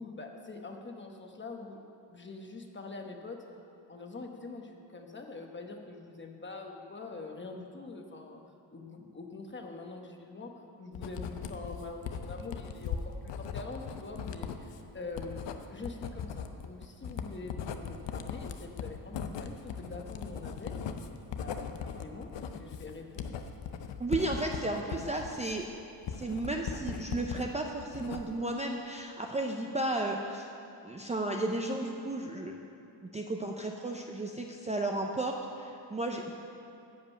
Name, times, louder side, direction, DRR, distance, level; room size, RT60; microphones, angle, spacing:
voice 1, 0.0-1.8 2.1-3.4 3.9-8.4 8.7-10.5 10.8-15.4 15.7-20.8 21.4-23.4 24.9-25.0, left 3 dB, 25° left, 3 dB, 1.0 m, -44 dB
Writing, 10.9-27.5 27.8-28.5, left 7 dB, 75° left, 0.7 m, -39 dB
voice 2, 24.0-25.6 26.2-30.5 30.8-32.6 33.1-36.3, right 2 dB, 15° right, 1 dB, 0.5 m, -33 dB
11.0 x 5.2 x 8.1 m, 2.8 s
wide cardioid pair, 125°, 43 cm